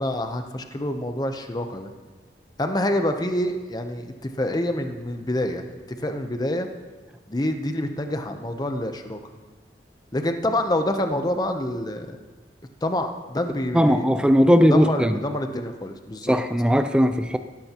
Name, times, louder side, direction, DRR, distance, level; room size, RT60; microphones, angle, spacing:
voice 1, 0.0-1.9 2.6-6.7 7.3-9.2 10.1-12.2 12.8-14.1 14.7-16.3, left 1 dB, 25° left, 6 dB, 0.8 m, -27 dB
voice 2, 13.7-15.2 16.3-17.4, equal, 5° right, 8 dB, 0.5 m, -18 dB
17.0 x 13.5 x 3.0 m, 1.3 s
head